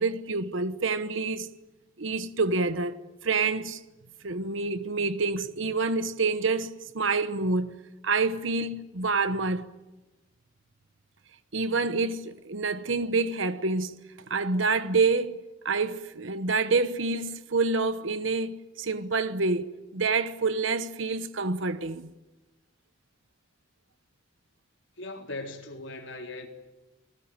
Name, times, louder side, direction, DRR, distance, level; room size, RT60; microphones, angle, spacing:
voice 1, 0.0-1.5 2.0-3.0 3.2-3.8 4.2-7.8 8.0-9.7 11.5-14.0 14.3-15.4 15.6-22.1, right 3 dB, 75° right, 1.1 m, -27 dB
voice 2, 25.0-26.5, left 2 dB, 70° left, 4.0 m, -39 dB
29.5 x 20.0 x 9.0 m
head